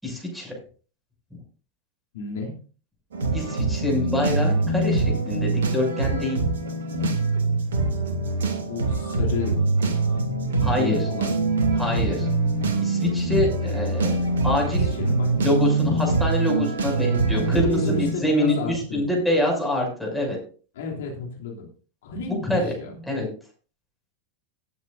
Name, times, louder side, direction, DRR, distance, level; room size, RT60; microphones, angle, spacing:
voice 1, 0.0-0.5 3.3-6.4 10.6-11.0 11.8-12.2 12.8-14.9 15.4-17.8 18.2-20.4 22.3-22.7 23.1-23.3, left 1 dB, ahead, -1 dB, 6.8 m, -25 dB
voice 2, 2.1-2.5 8.7-9.6 10.7-11.4 11.9-12.2 14.8-15.4 17.3-19.0 20.7-21.7 22.0-22.9, left 3 dB, 55° left, -1 dB, 3.0 m, -31 dB
sound 1, 3.1-18.1, right 2 dB, 65° right, 2.7 m, -24 dB
19.0 x 9.5 x 2.7 m, 0.39 s
figure-of-eight pair, 90°, 0 cm